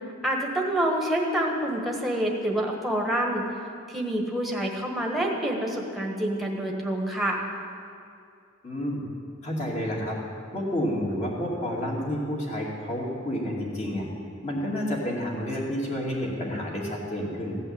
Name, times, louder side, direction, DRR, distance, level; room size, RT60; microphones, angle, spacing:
voice 1, 0.2-3.5 3.9-7.4, right 1 dB, ahead, -1 dB, 1.4 m, -27 dB
voice 2, 8.6-9.0 9.4-10.2 10.5-14.1 14.4-17.6, equal, 35° left, -3 dB, 2.4 m, -30 dB
15.0 x 5.6 x 8.7 m, 2.4 s
head